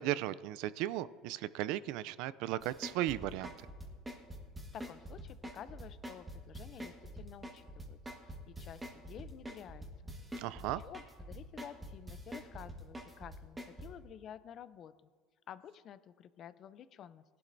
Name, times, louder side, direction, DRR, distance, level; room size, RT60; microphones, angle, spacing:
voice 1, 0.0-3.5 10.4-10.8, right 14 dB, 65° right, 18 dB, 0.4 m, -36 dB
sound 1, 2.6-13.9, equal, 10° right, 1.5 m, -45 dB
voice 2, 4.7-14.9 15.5-17.2, left 9 dB, 40° left, 15 dB, 0.4 m, -51 dB
20.5 x 11.5 x 2.6 m, 1.5 s
cardioid pair, 160°, 0 cm